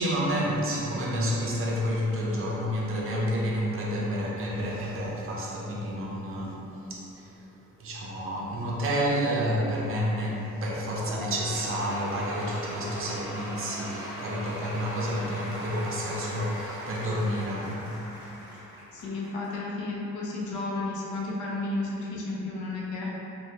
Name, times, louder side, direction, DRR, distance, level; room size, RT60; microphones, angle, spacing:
voice 1, 0.0-6.6 6.9-7.3 7.8-17.8, equal, 45° right, -4 dB, 0.6 m, -29 dB
Cheering / Applause / Crowd, 10.9-19.6, equal, 10° left, 1.5 m, -39 dB
voice 2, 18.9-23.1, left 2 dB, 75° left, -4 dB, 0.6 m, -32 dB
3.0 x 2.2 x 2.8 m, 3.0 s
cardioid pair, 90°, 30 cm